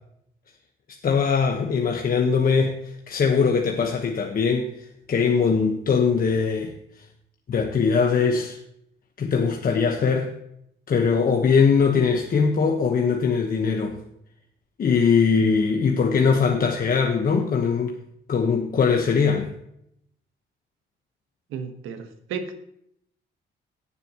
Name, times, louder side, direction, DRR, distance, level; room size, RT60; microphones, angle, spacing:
voice 1, 1.0-2.8 3.1-4.8 5.1-6.8 7.5-8.6 9.2-10.3 10.9-14.0 14.8-18.0 18.3-19.5, left 5 dB, 45° left, 2 dB, 1.1 m, -21 dB
voice 2, 21.5-22.6, right 6 dB, 90° right, 7 dB, 1.3 m, -33 dB
18.5 x 6.8 x 3.0 m, 0.74 s
cardioid pair, 90°, 20 cm